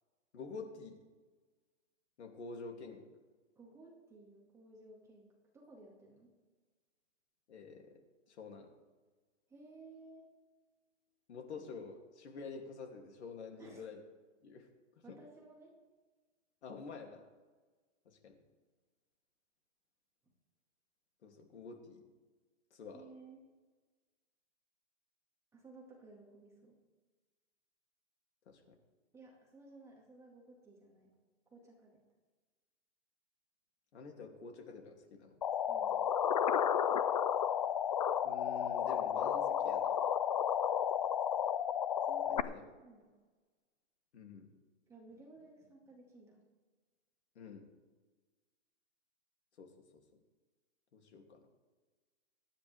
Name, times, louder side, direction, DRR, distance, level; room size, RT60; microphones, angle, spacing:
voice 1, 0.3-1.0 2.2-3.0 7.5-8.0 8.3-8.7 11.3-14.0 14.4-15.2 16.6-17.3 18.0-18.4 21.2-22.0 22.7-23.0 28.5-28.8 33.9-35.4 38.2-40.1 42.3-42.7 44.1-44.5 47.3-47.7 49.6-50.2 50.9-51.5, left 4 dB, 65° left, 2 dB, 3.0 m, -49 dB
voice 2, 3.6-6.3 9.5-10.2 13.6-13.8 15.0-15.7 22.9-23.4 25.5-26.8 29.1-31.1 31.5-32.0 35.7-36.0 42.1-42.5 42.8-43.1 44.9-46.4, right 3 dB, 5° right, -2 dB, 2.0 m, -56 dB
sound 1, 35.4-42.4, left 9 dB, 35° left, 0.4 m, -32 dB
26.5 x 10.0 x 3.6 m, 1.3 s
hypercardioid pair, 160°, 37 cm